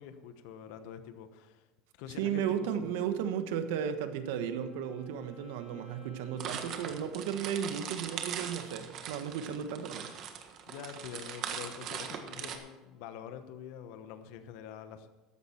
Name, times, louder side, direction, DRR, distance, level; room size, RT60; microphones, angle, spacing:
voice 1, 0.0-1.6 2.0-2.4 2.8-3.0 10.7-15.1, left 9 dB, 75° left, 9 dB, 1.0 m, -46 dB
voice 2, 2.1-10.1, right 8 dB, 85° right, 9 dB, 1.3 m, -34 dB
Wind instrument woodwind instrument, 3.6-8.0, right 2 dB, 40° left, 2.7 m, -56 dB
sound 1, 6.4-12.6, right 8 dB, 50° right, 1.6 m, -40 dB
14.0 x 11.0 x 4.5 m, 1.2 s
cardioid pair, 135°, 0 cm